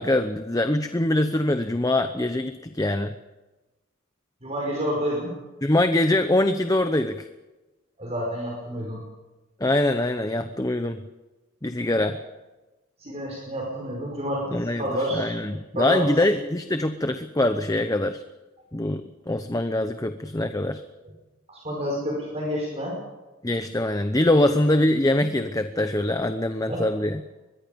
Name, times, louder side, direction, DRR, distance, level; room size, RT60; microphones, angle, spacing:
voice 1, 0.0-3.1 5.6-7.3 9.6-11.0 11.6-12.2 14.5-14.9 15.1-18.2 18.7-20.8 23.4-27.2, left 1 dB, 15° left, 8 dB, 0.8 m, -23 dB
voice 2, 4.4-5.3 8.0-9.0 13.0-15.4 15.7-16.2 21.0-21.1 21.5-23.0 24.3-24.4 26.7-26.9, equal, 30° right, -2 dB, 5.1 m, -29 dB
24.5 x 21.5 x 5.3 m, 1.1 s
head